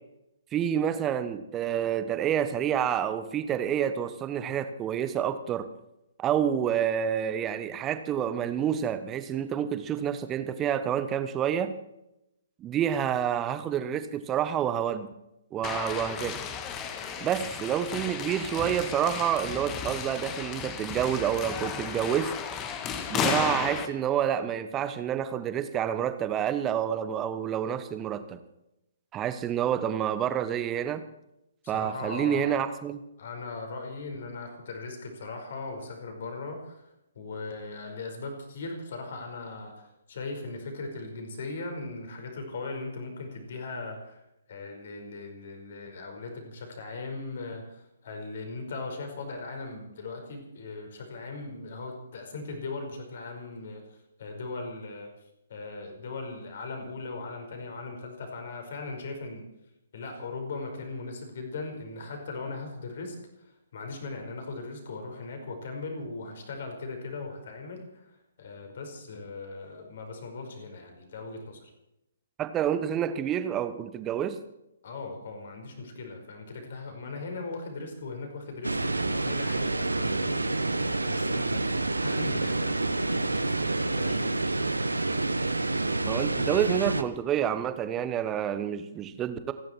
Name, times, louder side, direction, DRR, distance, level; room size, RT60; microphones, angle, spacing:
voice 1, 0.5-5.7 6.2-11.7 12.6-15.1 15.5-16.4 17.2-22.3 23.1-28.4 29.1-31.0 31.7-33.0 72.4-74.4 86.0-89.5, right 9 dB, 15° right, 11 dB, 1.2 m, -28 dB
sound 1, 15.6-23.9, left 6 dB, 20° left, 1.8 m, -34 dB
voice 2, 31.6-32.6 33.2-44.2 44.5-53.8 54.2-55.1 55.5-59.5 59.9-71.7 74.8-84.5, left 3 dB, 50° left, 4 dB, 5.2 m, -39 dB
sound 2, 78.6-87.0, right 2 dB, 80° right, 1.2 m, -28 dB
29.0 x 11.0 x 4.6 m, 0.86 s
figure-of-eight pair, 130°, 0 cm